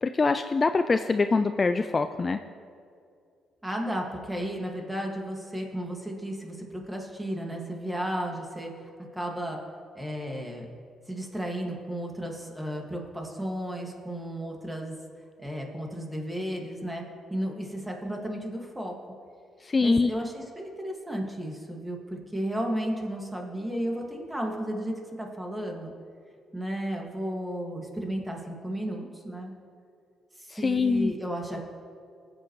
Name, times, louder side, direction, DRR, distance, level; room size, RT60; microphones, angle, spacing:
voice 1, 0.0-2.4 19.6-20.1 30.5-31.1, left 4 dB, 30° left, 9 dB, 0.4 m, -24 dB
voice 2, 3.6-8.7 9.1-9.6 9.9-10.7 11.1-15.0 15.4-17.0 17.3-18.9 19.8-25.9 26.5-29.5 30.4-31.6, equal, 10° right, 1 dB, 1.9 m, -33 dB
18.5 x 8.1 x 3.1 m, 2.3 s
cardioid pair, 90°, 0 cm